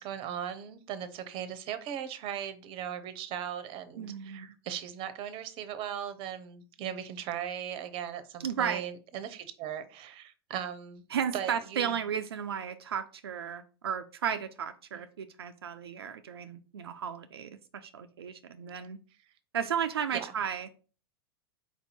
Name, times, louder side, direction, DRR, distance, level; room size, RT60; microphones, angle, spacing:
voice 1, 0.0-11.0 11.3-11.9 20.1-20.3, right 9 dB, 45° right, 12 dB, 0.7 m, -38 dB
voice 2, 4.0-4.5 8.4-8.9 11.1-19.0 19.5-20.7, right 8 dB, 85° right, 8 dB, 0.4 m, -34 dB
4.5 x 2.7 x 4.3 m, 0.37 s
hypercardioid pair, 95°, 13 cm